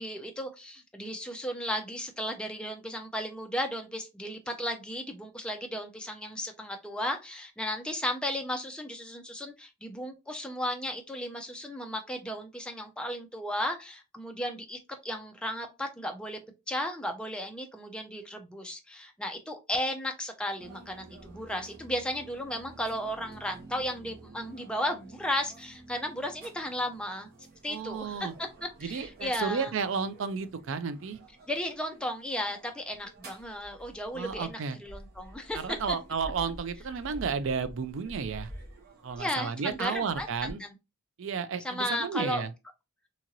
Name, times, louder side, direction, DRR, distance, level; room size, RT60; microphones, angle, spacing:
voice 1, 0.0-16.4 16.7-29.7 31.5-36.0 39.2-40.7 41.6-42.4, equal, 5° left, 0.4 m, -35 dB
sound 1, 20.6-40.5, right 1 dB, 45° right, 1.0 m, -50 dB
voice 2, 27.7-28.3 28.8-31.2 34.1-34.8 35.5-38.5 39.0-40.6 41.2-42.5, right 5 dB, 60° right, 0.4 m, -32 dB
2.8 x 2.5 x 2.9 m
head